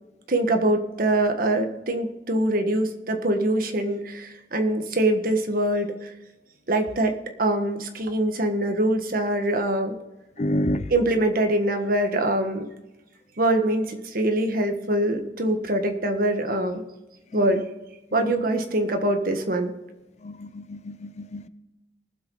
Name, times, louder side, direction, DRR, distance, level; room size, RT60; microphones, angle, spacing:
voice 1, 0.3-6.1 6.7-7.1 7.4-9.9 10.9-12.7 13.4-16.8 17.3-17.6 18.1-19.7, right 1 dB, 50° right, 1.5 m, -24 dB
voice 2, 10.4-10.8 20.3-21.5, left 1 dB, 40° left, 0.6 m, -28 dB
20.5 x 7.6 x 4.0 m
head